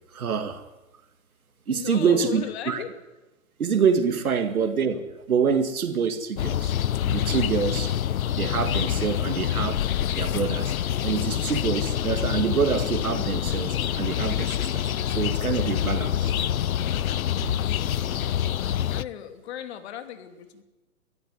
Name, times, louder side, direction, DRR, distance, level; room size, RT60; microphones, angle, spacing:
voice 1, 0.1-0.6 1.7-2.8 3.6-6.8 7.1-7.9 8.3-9.8 10.1-10.7 11.0-16.3 17.4-17.6, right 6 dB, 70° right, 8 dB, 2.2 m, -26 dB
voice 2, 1.7-2.9 4.4-4.5 14.7-15.4 15.7-16.0 17.6-18.4 18.9-20.6, left 10 dB, 45° left, 8 dB, 2.9 m, -38 dB
sound 1, 6.4-19.0, left 10 dB, 70° left, 0.8 m, -26 dB
22.5 x 14.5 x 9.7 m, 1.1 s
hypercardioid pair, 135°, 44 cm